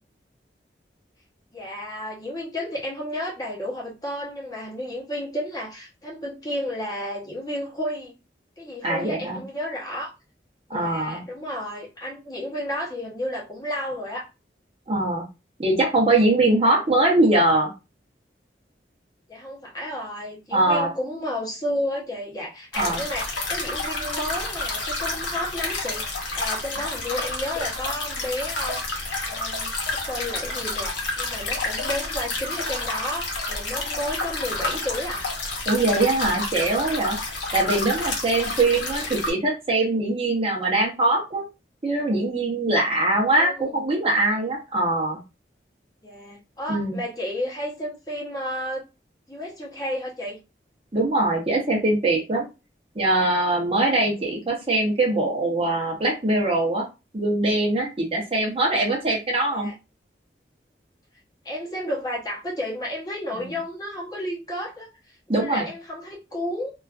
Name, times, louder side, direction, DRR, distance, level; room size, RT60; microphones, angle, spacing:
voice 1, 1.5-8.2 8.6-10.1 10.7-14.3 19.3-26.0 26.4-35.3 38.9-39.1 43.4-43.8 46.0-48.8 49.3-50.4 59.5-59.7 61.4-66.7, left 1 dB, 20° left, -4 dB, 0.8 m, -32 dB
voice 2, 8.8-9.4 10.7-11.3 14.9-15.2 15.6-17.7 20.5-20.9 22.7-23.0 35.7-37.2 37.5-41.4 41.8-45.2 46.7-47.0 50.9-52.5 53.0-56.8 57.1-59.7 63.3-63.4 65.3-65.7, right 2 dB, 30° right, -2 dB, 0.7 m, -22 dB
sound 1, 22.7-39.3, left 2 dB, 85° left, 0.8 m, -29 dB
2.4 x 2.3 x 2.4 m, 0.27 s
head